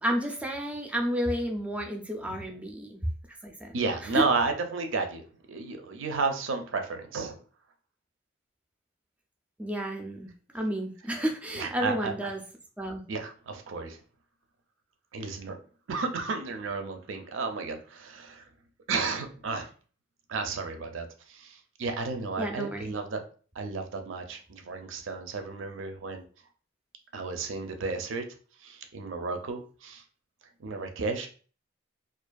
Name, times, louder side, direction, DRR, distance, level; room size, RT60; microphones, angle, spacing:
voice 1, 0.0-3.0 3.4-3.8 4.1-4.2 9.6-12.4 12.8-13.0 22.4-22.9, equal, 5° right, 2 dB, 0.4 m, -31 dB
voice 2, 3.7-7.4 11.5-12.3 13.1-14.0 15.1-15.6 15.9-18.5 18.9-19.7 20.3-23.2 23.6-26.2 27.1-28.3 28.6-30.0 30.6-31.3, right 4 dB, 65° right, 5 dB, 0.4 m, -32 dB
2.5 x 2.4 x 2.2 m, 0.40 s
head